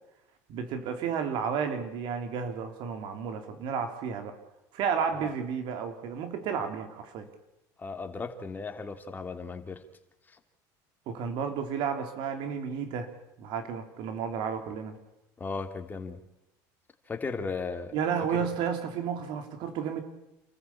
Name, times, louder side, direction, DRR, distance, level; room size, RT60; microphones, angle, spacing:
voice 1, 0.5-4.3 4.7-7.3 11.1-13.1 13.4-14.9 17.9-20.0, right 7 dB, 65° right, 7 dB, 3.3 m, -32 dB
voice 2, 7.8-9.9 10.3-10.4 15.4-16.2 17.1-18.0 18.3-18.5, left 4 dB, 20° left, 6 dB, 2.8 m, -36 dB
28.5 x 14.0 x 8.6 m, 0.92 s
supercardioid pair, 110°, 9 cm